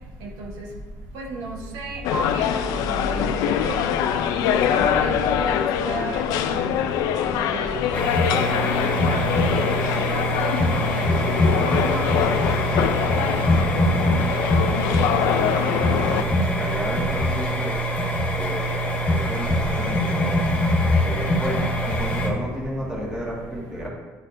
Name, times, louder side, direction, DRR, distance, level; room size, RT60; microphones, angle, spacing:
voice 1, 0.2-0.7 1.1-2.5 2.7-4.1 4.6-6.8 7.3-9.2 9.6-10.6 10.9-12.0 12.5-13.1, right 2 dB, 90° right, 0 dB, 1.1 m, -33 dB
sound 1, 2.0-16.2, left 9 dB, 85° left, 0.4 m, -24 dB
sound 2, 7.9-22.3, equal, 20° left, 0.9 m, -23 dB
voice 2, 15.7-17.7 18.3-18.8 19.1-20.4 21.0-23.9, left 1 dB, 10° right, -4 dB, 1.5 m, -32 dB
10.0 x 4.2 x 2.6 m, 1.3 s
cardioid pair, 155°, 6 cm